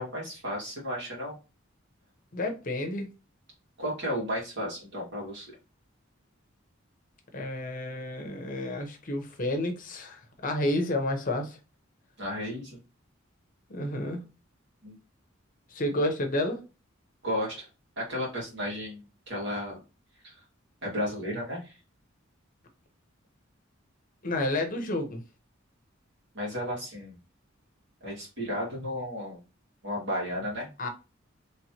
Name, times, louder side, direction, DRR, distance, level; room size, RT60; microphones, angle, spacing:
voice 1, 0.0-1.4 3.8-5.5 12.2-12.8 14.8-15.0 17.2-17.7 18.0-19.8 20.2-20.3 20.8-21.7 26.3-27.2 28.0-29.4 29.8-30.7, equal, 60° right, 2.0 m, -33 dB
voice 2, 2.3-3.1 7.3-11.6 13.7-14.2 15.7-16.6 24.2-25.2 30.8-30.9, left 1 dB, 45° left, 0.9 m, -30 dB
3.2 x 3.1 x 2.9 m
head